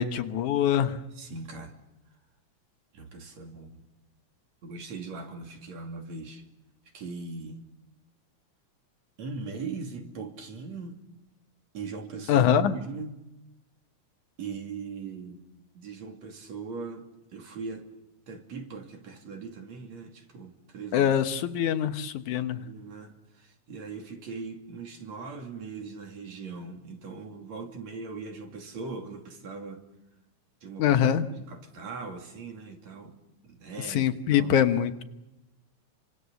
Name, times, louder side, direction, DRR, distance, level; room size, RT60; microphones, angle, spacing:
voice 1, 0.0-1.0 12.3-12.8 20.9-22.6 30.8-31.3 33.9-35.0, left 9 dB, 80° left, 2.6 m, -24 dB
voice 2, 1.2-1.8 2.9-3.8 4.6-6.4 6.9-7.7 9.2-11.0 11.7-13.2 14.4-15.4 15.7-17.9 18.3-21.2 22.6-29.8 30.6-33.2 33.4-34.5, right 4 dB, 65° right, 4.0 m, -40 dB
29.5 x 25.0 x 7.0 m
omnidirectional pair, 3.4 m